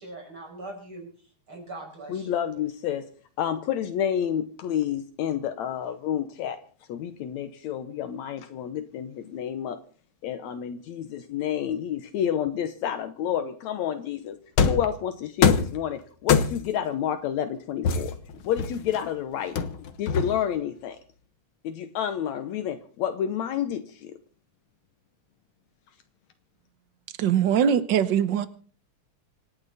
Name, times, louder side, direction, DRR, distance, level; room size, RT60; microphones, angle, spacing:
voice 1, 0.0-2.4, right 2 dB, 45° right, 6.9 m, -42 dB
voice 2, 2.1-3.1 3.4-6.6 6.9-9.8 10.2-14.4 14.7-18.2 18.4-21.0 21.6-24.1, left 9 dB, 75° left, 2.2 m, -29 dB
sound 1, 14.6-14.9 15.4-15.8 16.3-16.8 17.8-19.0 19.6-20.6, left 6 dB, 55° left, 1.8 m, -23 dB
voice 3, 27.2-28.5, right 8 dB, 80° right, 1.0 m, -22 dB
26.5 x 10.5 x 4.2 m
omnidirectional pair, 3.3 m